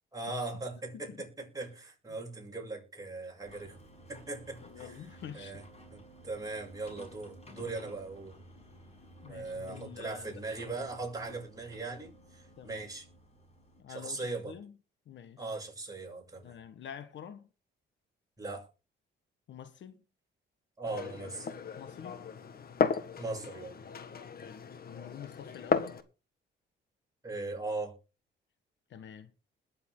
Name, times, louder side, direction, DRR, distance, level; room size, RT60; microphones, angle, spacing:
voice 1, 0.1-3.8 4.1-4.9 5.3-5.6 5.9-8.3 9.3-13.1 13.9-14.6 15.4-16.6 18.4-18.7 20.8-21.5 23.2-23.8 27.2-27.9, right 3 dB, 15° right, 7.8 m, -39 dB
sound 1, 3.4-13.8, equal, 30° left, 5.9 m, -53 dB
voice 2, 4.6-5.6 9.2-10.4 12.6-12.9 13.8-14.8 15.1-15.5 16.4-17.5 19.5-20.0 21.8-22.2 24.4-26.0 28.9-29.3, left 8 dB, 65° left, 1.5 m, -47 dB
Glass, 20.9-26.0, left 6 dB, 50° left, 1.7 m, -35 dB
21.0 x 7.5 x 3.9 m
cardioid pair, 90°, 20 cm